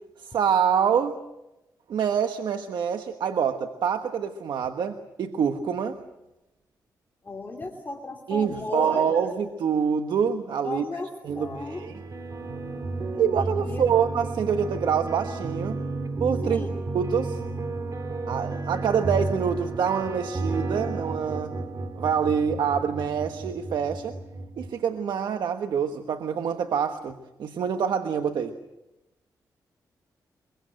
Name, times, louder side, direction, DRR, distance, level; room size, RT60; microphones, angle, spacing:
voice 1, 0.2-1.2 1.9-6.0 8.3-12.0 13.2-15.8 16.2-16.6 16.9-17.4 18.3-21.6 21.9-24.2 24.6-28.5, right 7 dB, 80° right, 7 dB, 1.3 m, -26 dB
voice 2, 7.2-9.3 10.6-11.8 13.1-13.3 13.6-13.8 16.4-16.7, left 3 dB, 25° left, 1 dB, 2.9 m, -35 dB
sound 1, 11.3-24.7, right 3 dB, 50° right, 2.9 m, -32 dB
23.5 x 23.5 x 7.8 m, 0.96 s
cardioid pair, 80°, 7 cm